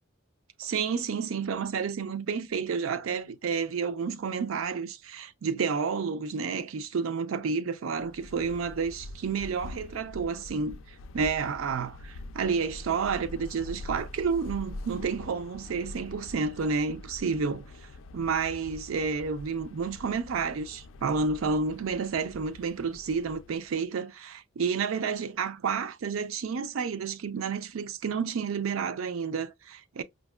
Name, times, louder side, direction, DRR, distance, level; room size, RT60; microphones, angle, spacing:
voice 1, 0.6-10.8 11.1-17.7 18.1-30.0, right 5 dB, 90° right, 0.4 m, -30 dB
sound 1, 8.0-23.7, left 2 dB, 70° left, 0.3 m, -45 dB
5.1 x 2.1 x 2.2 m
head